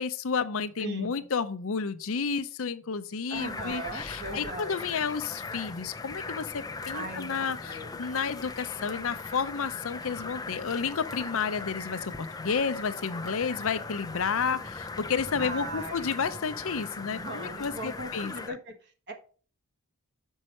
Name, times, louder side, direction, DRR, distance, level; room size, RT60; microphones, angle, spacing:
voice 1, 0.0-18.6, left 5 dB, 65° left, 0.6 m, -31 dB
voice 2, 0.8-1.3 3.3-5.0 6.9-7.9 15.4-16.2 17.1-19.1, right 2 dB, 50° right, 1.5 m, -39 dB
sound 1, 3.3-18.5, left 3 dB, 15° left, 0.4 m, -39 dB
6.4 x 5.4 x 4.3 m
head